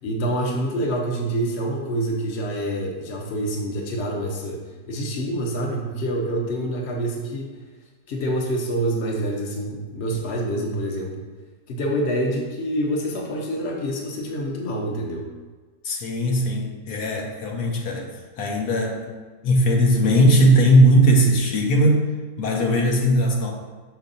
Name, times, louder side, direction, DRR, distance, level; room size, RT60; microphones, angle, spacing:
voice 1, 0.0-4.6 4.9-7.5 8.1-11.2 11.7-15.3, right 1 dB, 50° left, 0 dB, 1.2 m, -26 dB
voice 2, 15.8-19.2 19.4-22.1 22.4-23.5, equal, 85° left, 1 dB, 1.4 m, -19 dB
6.2 x 4.6 x 4.0 m, 1.4 s
omnidirectional pair, 1.6 m